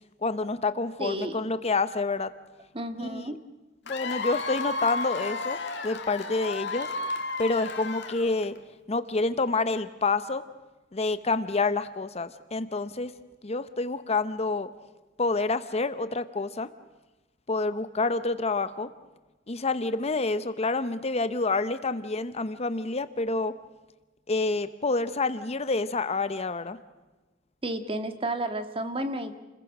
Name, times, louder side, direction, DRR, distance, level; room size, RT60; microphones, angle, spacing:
voice 1, 0.2-2.3 3.0-3.3 3.9-6.9 7.4-8.5 8.9-10.4 10.9-13.1 13.4-14.7 15.2-16.7 17.5-18.9 19.5-23.5 24.3-26.8, left 3 dB, 35° left, 12 dB, 0.8 m, -28 dB
voice 2, 1.0-1.4 2.7-3.4 27.6-29.4, right 1 dB, 30° right, 8 dB, 1.8 m, -32 dB
Cheering / Applause / Crowd, 3.9-8.6, left 3 dB, 65° left, 2.3 m, -33 dB
29.0 x 21.5 x 6.1 m, 1.2 s
head